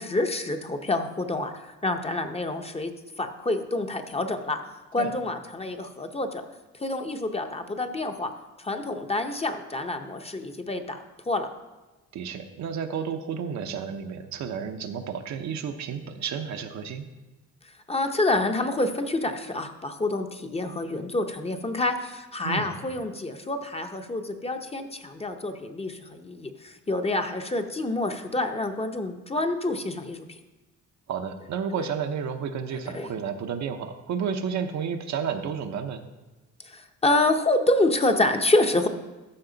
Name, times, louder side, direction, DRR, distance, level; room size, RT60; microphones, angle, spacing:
voice 1, 0.0-2.9 3.2-4.6 4.9-6.4 6.8-8.3 8.6-11.0 11.2-11.5 17.9-30.3 32.9-33.1 36.6-38.9, left 2 dB, 20° left, 6 dB, 0.7 m, -27 dB
voice 2, 12.1-17.1 22.4-22.7 31.1-36.1, right 7 dB, 65° right, 6 dB, 0.8 m, -31 dB
13.0 x 4.8 x 3.9 m, 1.1 s
cardioid pair, 90°, 30 cm